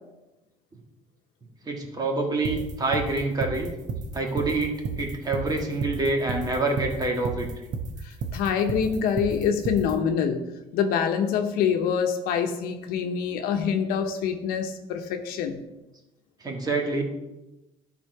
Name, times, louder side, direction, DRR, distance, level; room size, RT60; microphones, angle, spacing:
voice 1, 1.7-3.7 4.1-4.7 5.0-7.5 16.4-17.0, right 2 dB, 25° right, 2 dB, 1.8 m, -26 dB
sound 1, 2.4-9.9, right 5 dB, 55° right, 0.8 m, -32 dB
voice 2, 8.0-10.5 10.7-15.6, left 7 dB, 85° left, 5 dB, 0.9 m, -25 dB
12.0 x 4.3 x 4.7 m, 1.0 s
cardioid pair, 120°, 15 cm